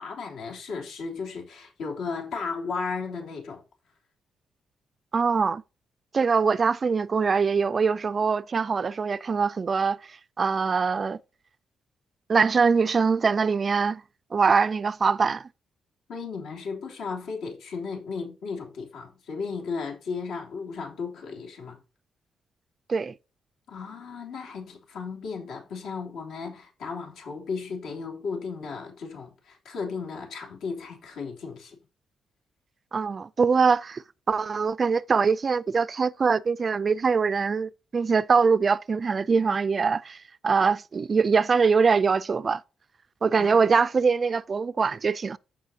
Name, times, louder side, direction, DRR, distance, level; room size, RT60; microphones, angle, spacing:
voice 1, 0.0-3.6 16.1-21.8 23.7-31.7 43.4-43.6, left 5 dB, 80° left, 3.2 m, -35 dB
voice 2, 5.1-5.6 6.1-11.2 12.3-14.0 14.3-15.5 22.9-23.1 32.9-42.6 43.2-45.4, right 5 dB, 30° right, 0.3 m, -23 dB
14.5 x 4.9 x 2.8 m
cardioid pair, 165°, 0 cm